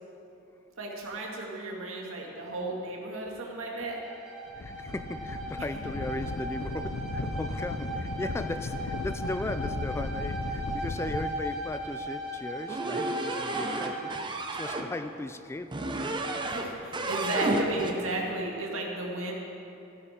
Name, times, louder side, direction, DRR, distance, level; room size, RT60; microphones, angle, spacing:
voice 1, 0.8-4.0 16.4-19.3, right 2 dB, 85° right, -1 dB, 2.1 m, -34 dB
Bowed string instrument, 3.8-14.3, right 1 dB, 5° right, 2.3 m, -38 dB
sound 1, 4.5-11.3, left 2 dB, 70° left, 0.6 m, -36 dB
voice 2, 4.6-15.9, left 2 dB, 15° left, 10 dB, 0.3 m, -37 dB
sound 2, 12.7-14.9 15.7-16.7 16.9-18.0, right 2 dB, 25° right, 0.8 m, -32 dB
15.5 x 10.0 x 4.4 m, 2.8 s
head